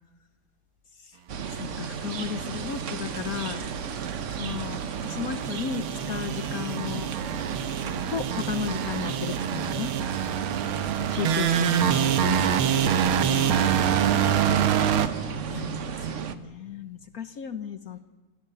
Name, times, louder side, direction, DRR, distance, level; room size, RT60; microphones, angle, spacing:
sound 1, 1.3-16.4, right 7 dB, 50° right, 1.0 m, -34 dB
voice 1, 1.5-3.6 4.3-7.1 8.1-9.9 11.1-13.6 15.5-18.0, left 8 dB, 60° left, 11 dB, 1.1 m, -34 dB
sound 2, 2.7-15.1, right 9 dB, 85° right, 1.9 m, -26 dB
voice 2, 10.2-11.0 15.2-15.8 16.3-16.9, left 1 dB, 10° right, 2 dB, 4.6 m, -54 dB
27.0 x 16.5 x 6.9 m, 1.2 s
omnidirectional pair, 2.3 m